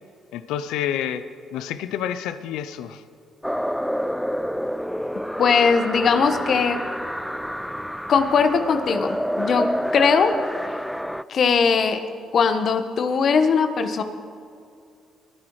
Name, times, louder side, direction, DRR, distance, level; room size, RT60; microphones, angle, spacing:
voice 1, 0.3-1.2 1.5-3.0, left 10 dB, 75° left, 12 dB, 0.5 m, -28 dB
sound 1, 3.4-11.2, equal, ahead, 0.3 m, -28 dB
voice 2, 5.4-6.8 8.1-10.4 11.3-12.0 12.3-14.0, left 5 dB, 55° left, 8 dB, 1.1 m, -20 dB
21.5 x 10.5 x 3.1 m, 2.4 s
hypercardioid pair, 50°, 0 cm